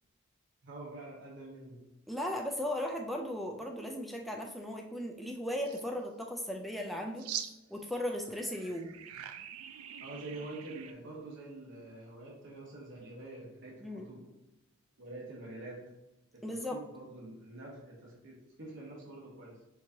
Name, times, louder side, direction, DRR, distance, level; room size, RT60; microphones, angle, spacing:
voice 1, 0.6-1.8 10.0-14.3 15.0-15.8 16.3-19.6, right 2 dB, 60° right, -4 dB, 1.0 m, -46 dB
voice 2, 2.1-7.3 7.7-8.9 13.8-14.0 16.4-16.8, left 1 dB, ahead, 0 dB, 0.3 m, -37 dB
sound 1, 5.6-5.8 7.2-7.9 8.2-10.9, right 9 dB, 85° right, 0.3 m, -43 dB
4.5 x 2.7 x 2.7 m, 0.95 s
head